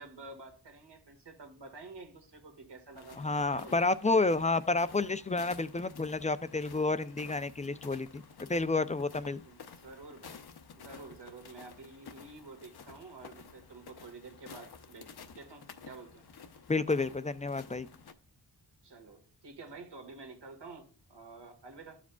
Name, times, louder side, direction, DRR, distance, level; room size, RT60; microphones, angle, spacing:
voice 1, 0.0-3.2 3.5-3.9 9.4-10.4 10.7-16.2 18.8-22.0, right 3 dB, 70° right, 5 dB, 1.7 m, -50 dB
sound 1, 2.9-18.1, left 5 dB, 60° left, 0.7 m, -52 dB
voice 2, 3.2-9.4 16.7-17.9, left 3 dB, 20° left, 13 dB, 0.3 m, -30 dB
12.5 x 4.9 x 2.3 m, 0.41 s
wide cardioid pair, 105°, 43 cm